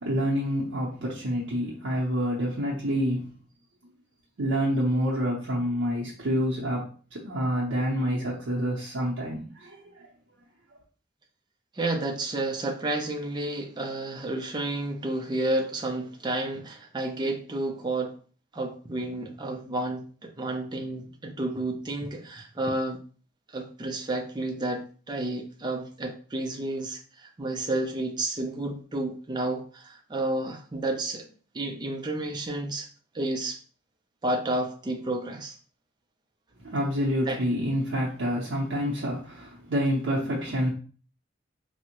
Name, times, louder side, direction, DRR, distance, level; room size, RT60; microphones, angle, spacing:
voice 1, 0.0-3.3 4.4-6.9 7.1-10.1 36.6-40.7, equal, 65° right, 0.6 m, -27 dB
voice 2, 11.7-18.2 18.5-23.0 23.5-32.9 33.1-33.6 34.2-35.6 37.3-37.4, right 2 dB, 20° right, 0.4 m, -31 dB
3.4 x 2.0 x 2.8 m
head